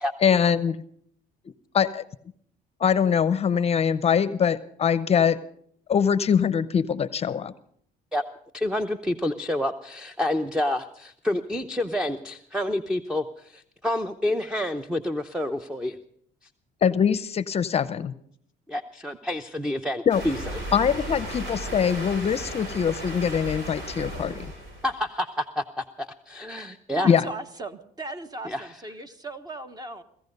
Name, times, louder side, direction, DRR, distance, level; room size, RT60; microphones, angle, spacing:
voice 1, 0.2-0.8 1.7-2.0 2.8-5.4 5.9-7.5 16.8-18.1 20.1-20.2 20.7-24.5 27.0-27.3, left 7 dB, 40° left, 15 dB, 0.6 m, -23 dB
voice 2, 8.5-16.0 18.7-20.6 24.8-27.1 28.4-28.7, left 1 dB, 5° right, 9 dB, 0.7 m, -28 dB
sound 1, 20.1-25.0, right 1 dB, 85° right, 6.5 m, -35 dB
voice 3, 26.9-30.0, right 2 dB, 25° right, 9 dB, 1.2 m, -37 dB
18.5 x 14.5 x 5.4 m, 0.64 s
cardioid pair, 110°, 17 cm